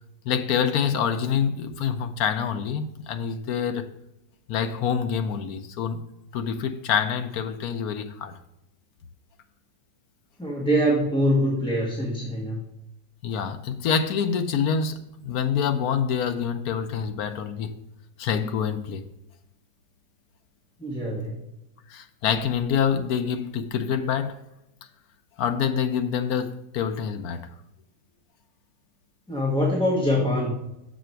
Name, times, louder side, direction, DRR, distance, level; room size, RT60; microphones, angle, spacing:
voice 1, 0.2-3.9 4.5-6.0 6.3-8.4 13.2-17.8 18.2-19.0 21.9-24.4 25.4-27.5, left 7 dB, 70° left, 1.0 m, -26 dB
voice 2, 10.4-12.6 20.8-21.4 29.3-30.7, equal, 5° left, 1.0 m, -24 dB
6.7 x 5.1 x 4.5 m
omnidirectional pair, 1.9 m